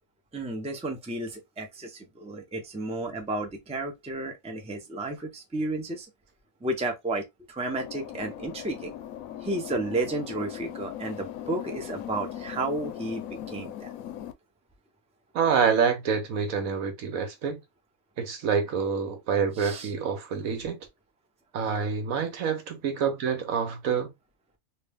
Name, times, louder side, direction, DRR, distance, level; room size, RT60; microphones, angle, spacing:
voice 1, 0.3-6.1 6.6-8.9 9.4-13.9 19.6-19.9, right 2 dB, 5° right, 0.6 m, -32 dB
sound 1, 7.7-14.3, left 11 dB, 80° left, 1.0 m, -39 dB
voice 2, 15.3-17.6 18.2-20.8 21.5-24.1, right 6 dB, 80° right, 1.3 m, -27 dB
3.2 x 2.7 x 3.4 m
omnidirectional pair, 1.4 m